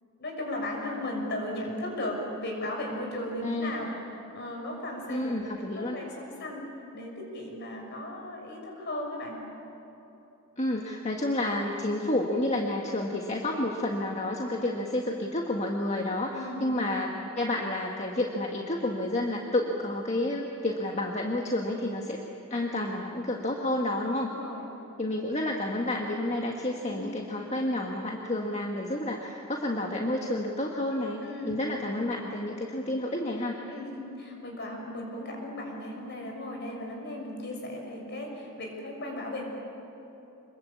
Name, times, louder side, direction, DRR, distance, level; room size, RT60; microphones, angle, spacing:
voice 1, 0.2-3.9 4.3-9.4 16.3-16.7 24.2-24.7 26.8-27.2 31.2-31.6 33.7-39.4, left 1 dB, 55° left, 1 dB, 6.4 m, -36 dB
voice 2, 3.4-3.7 5.1-6.0 10.6-22.2 22.5-24.3 25.0-33.6, left 1 dB, 30° left, 0 dB, 1.6 m, -30 dB
26.5 x 21.5 x 8.6 m, 3.0 s
head